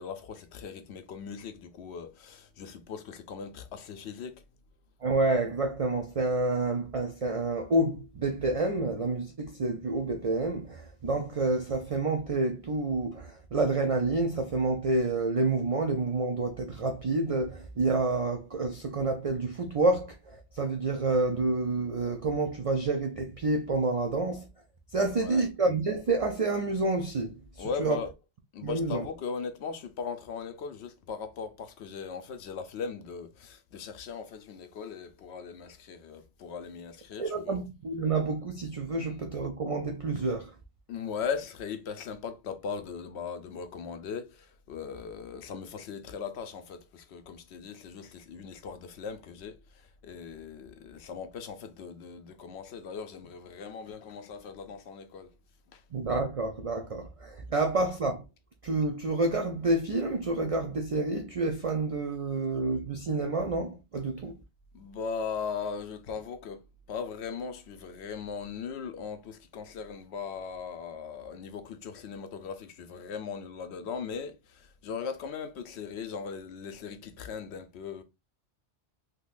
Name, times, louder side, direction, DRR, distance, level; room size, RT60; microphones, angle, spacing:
voice 1, 0.0-4.4 25.0-25.4 27.6-28.1 28.5-37.6 40.9-55.3 55.7-55.8 64.7-78.0, left 6 dB, 70° left, 0.8 m, -39 dB
voice 2, 5.0-24.5 24.9-28.0 28.6-29.1 37.2-40.5 55.9-58.2 58.6-64.4, right 2 dB, 60° right, 0.3 m, -29 dB
3.7 x 2.8 x 2.4 m
omnidirectional pair, 1.2 m